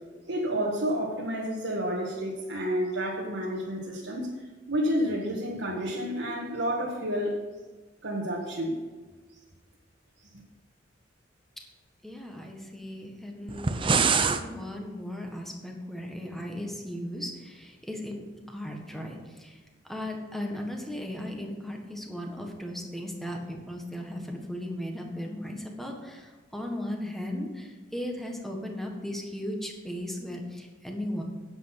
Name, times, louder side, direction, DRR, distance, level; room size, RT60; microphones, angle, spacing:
voice 1, 0.3-4.3 4.7-7.3 8.0-8.8, equal, 75° right, -3 dB, 1.7 m, -30 dB
voice 2, 12.0-31.2, left 1 dB, ahead, 1 dB, 1.6 m, -37 dB
sound 1, 13.5-14.4, right 5 dB, 25° right, 0.6 m, -24 dB
10.0 x 7.9 x 5.9 m, 1.3 s
head